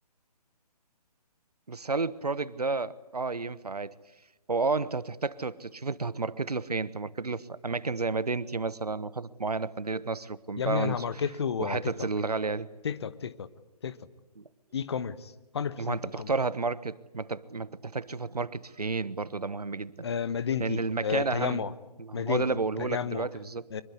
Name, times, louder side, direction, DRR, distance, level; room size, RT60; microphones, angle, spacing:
voice 1, 1.7-3.9 4.5-11.0 11.6-12.7 14.4-14.5 15.8-20.1 20.6-21.6 22.0-23.7, right 3 dB, 70° right, 1.2 m, -31 dB
voice 2, 10.6-12.1 12.8-13.5 13.8-14.0 14.7-16.3 20.0-21.7 22.1-22.4 22.8-23.3 23.7-23.8, left 7 dB, 40° left, 1.1 m, -32 dB
24.5 x 22.5 x 9.6 m
figure-of-eight pair, 140°, 21 cm